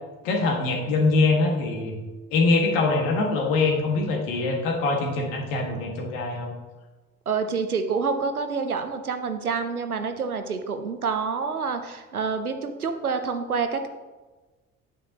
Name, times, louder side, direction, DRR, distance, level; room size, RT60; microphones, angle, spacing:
voice 1, 0.2-2.0 2.3-6.5, left 3 dB, 60° left, 2 dB, 1.8 m, -23 dB
voice 2, 7.3-13.9, right 5 dB, 85° right, 8 dB, 0.7 m, -27 dB
8.9 x 8.5 x 2.9 m, 1.2 s
figure-of-eight pair, 55°, 43 cm